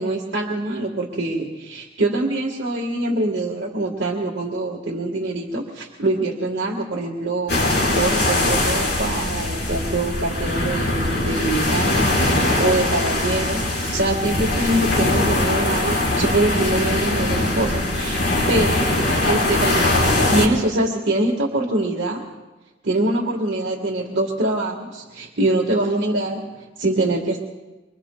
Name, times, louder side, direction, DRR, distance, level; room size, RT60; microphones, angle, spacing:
voice 1, 0.0-18.9 19.3-22.3 22.8-27.4, right 2 dB, 80° right, -2 dB, 1.5 m, -24 dB
sound 1, 7.5-20.5, left 2 dB, 75° left, 4.3 m, -21 dB
24.5 x 24.0 x 2.2 m, 1.1 s
head